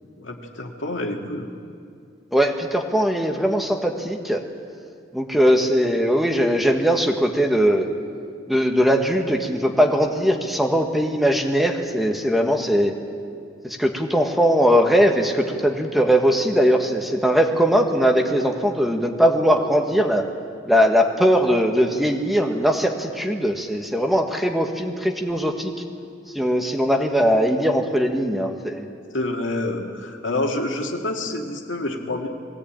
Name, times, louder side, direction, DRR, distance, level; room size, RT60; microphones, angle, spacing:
voice 1, 0.2-1.5 29.1-32.3, left 2 dB, 85° left, 2 dB, 2.2 m, -27 dB
voice 2, 2.3-4.4 5.1-7.9 8.5-12.9 13.6-20.2 20.7-25.7 26.3-28.9, equal, ahead, 3 dB, 1.3 m, -20 dB
21.5 x 16.5 x 8.8 m, 2.3 s
head